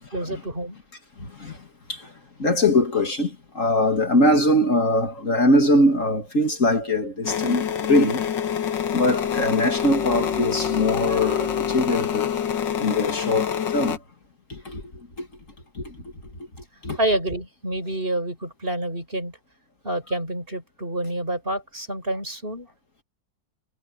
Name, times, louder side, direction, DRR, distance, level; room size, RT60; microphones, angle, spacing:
voice 1, 0.1-0.8 17.0-19.4 19.8-22.7, right 1 dB, 30° right, 7.7 m, -28 dB
voice 2, 1.2-2.1 2.4-8.2 8.9-12.3 12.8-14.0 14.5-14.8 15.2-15.3 15.7-16.0 16.8-17.0, left 1 dB, 45° left, 2.8 m, -22 dB
sound 1, 7.2-14.0, left 8 dB, 75° left, 2.0 m, -26 dB
omnidirectional pair, 2.0 m